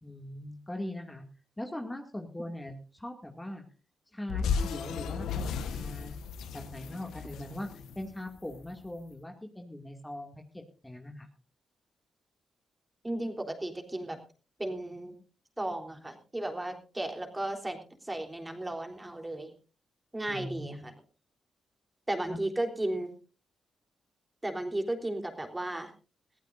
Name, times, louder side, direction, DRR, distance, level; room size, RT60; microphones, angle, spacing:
voice 1, 0.0-1.2 1.6-3.6 4.1-6.2 6.5-7.7 8.0-11.3 20.3-20.8 22.3-22.4, left 1 dB, 15° left, 3 dB, 2.3 m, -41 dB
sound 1, 4.3-8.7, left 6 dB, 80° left, 1.2 m, -34 dB
voice 2, 13.0-14.2 14.6-15.1 15.6-19.5 20.1-20.9 22.1-23.1 24.4-25.9, right 1 dB, 15° right, 4 dB, 3.6 m, -34 dB
22.5 x 15.0 x 2.6 m, 0.36 s
supercardioid pair, 50°, 0 cm